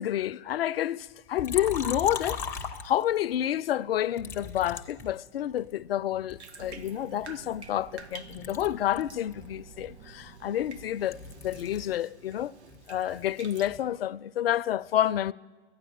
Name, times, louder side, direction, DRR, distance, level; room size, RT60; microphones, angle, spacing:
voice 1, 0.0-2.4 2.8-12.5 12.9-15.3, left 11 dB, 60° left, 0.5 m, -29 dB
Liquid, 1.4-3.3 4.2-5.7 6.3-8.0 8.3-12.0 12.3-13.9, left 6 dB, 10° left, 0.4 m, -40 dB
Bathtub (filling or washing), 6.4-13.7, right 4 dB, 75° right, 1.3 m, -51 dB
sound 1, 6.6-11.8, right 6 dB, 45° right, 1.4 m, -50 dB
12.5 x 9.5 x 9.3 m
hypercardioid pair, 130°, 33 cm